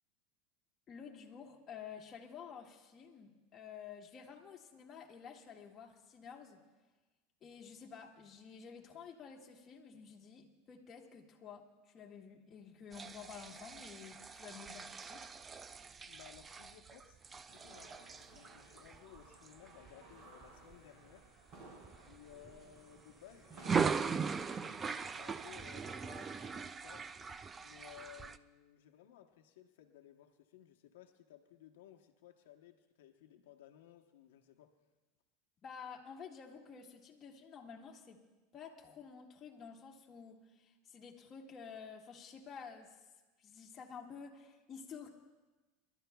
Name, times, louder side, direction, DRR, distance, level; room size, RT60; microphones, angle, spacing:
voice 1, 0.9-6.6 7.4-15.2 35.6-38.2 38.5-43.0 43.4-45.1, left 6 dB, 30° left, 0 dB, 1.7 m, -51 dB
sound 1, 12.9-20.8 21.2-21.5 21.8-23.0 23.5-28.4, right 5 dB, 20° right, 0.4 m, -40 dB
voice 2, 16.1-21.3 22.0-27.1 27.6-34.7, left 11 dB, 85° left, 3 dB, 0.9 m, -59 dB
sound 2, 17.5-26.5, right 2 dB, 40° right, 4.3 m, -57 dB
29.0 x 12.0 x 2.3 m, 1.2 s
supercardioid pair, 125°, 0 cm